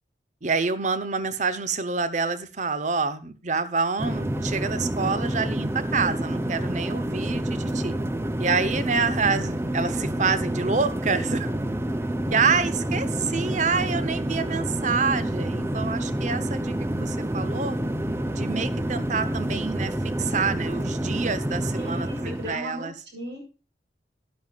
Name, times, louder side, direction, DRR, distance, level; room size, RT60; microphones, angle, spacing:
voice 1, 0.4-7.9 8.4-11.5 12.3-17.8 18.3-22.9, right 5 dB, 45° right, 13 dB, 1.0 m, -27 dB
sound 1, 4.0-22.6, right 1 dB, 15° right, 0.6 m, -28 dB
voice 2, 21.8-23.4, equal, 80° right, 2 dB, 5.6 m, -37 dB
12.5 x 11.0 x 2.4 m, 0.32 s
head